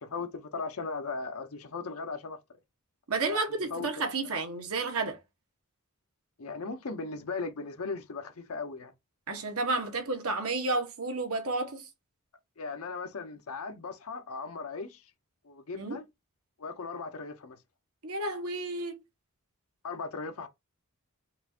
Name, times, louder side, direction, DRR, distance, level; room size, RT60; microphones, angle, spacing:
voice 1, 0.0-2.4 3.3-3.4 3.7-4.1 6.4-8.9 12.6-15.0 15.4-16.1 16.6-17.6 19.8-20.5, left 4 dB, 70° left, 0.7 m, -37 dB
voice 2, 3.1-5.2 9.3-11.8 15.7-16.0 18.0-19.0, right 3 dB, 80° right, 1.2 m, -31 dB
5.3 x 2.5 x 2.7 m
head